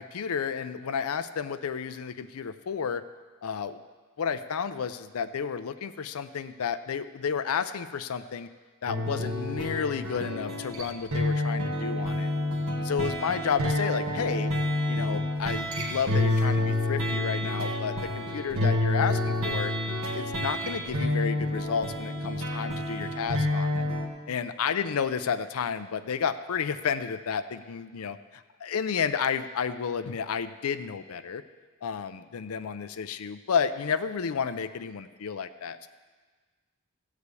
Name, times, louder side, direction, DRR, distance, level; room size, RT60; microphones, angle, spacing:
voice 1, 0.0-3.0 3.4-3.8 4.2-8.5 8.8-12.3 12.9-14.5 14.9-19.7 20.1-23.9 24.3-31.4 31.8-35.9, left 6 dB, 90° left, 10 dB, 0.5 m, -31 dB
sound 1, 8.9-24.1, left 1 dB, 80° right, 1.6 m, -29 dB
14.5 x 4.9 x 8.3 m, 1.4 s
head